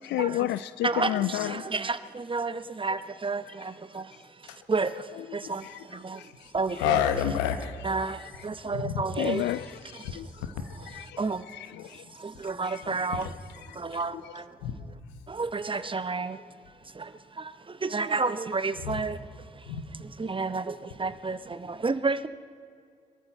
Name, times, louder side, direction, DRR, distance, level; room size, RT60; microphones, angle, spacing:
voice 1, 0.0-1.7 5.3-5.8 6.2-6.5 8.2-8.3 9.2-12.0 12.6-13.3 13.7-13.8 14.2-14.3, left 14 dB, 65° left, 0.4 m, -33 dB
voice 2, 0.8-7.0 7.8-9.5 10.0-10.2 10.6-11.5 11.8-13.3 13.7-14.6 15.3-16.5 16.9-22.3, right 4 dB, 25° right, 0.9 m, -32 dB
voice 3, 6.8-7.8 8.7-9.0 14.6-14.7 18.8-19.0 19.7-19.8, left 9 dB, 80° left, 1.0 m, -27 dB
22.5 x 14.0 x 4.4 m
hypercardioid pair, 40°, 19 cm